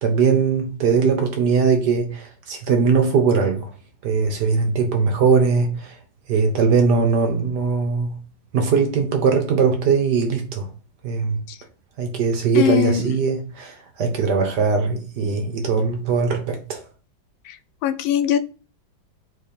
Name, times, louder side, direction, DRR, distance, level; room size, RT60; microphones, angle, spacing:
voice 1, 0.0-3.7 4.0-6.0 6.3-8.2 8.5-10.7 11.0-11.4 12.0-16.8, right 5 dB, 60° right, 1.6 m, -20 dB
voice 2, 12.5-13.1 17.5-17.6 17.8-18.4, left 10 dB, 80° left, 1.3 m, -21 dB
4.5 x 4.3 x 5.2 m
omnidirectional pair, 2.2 m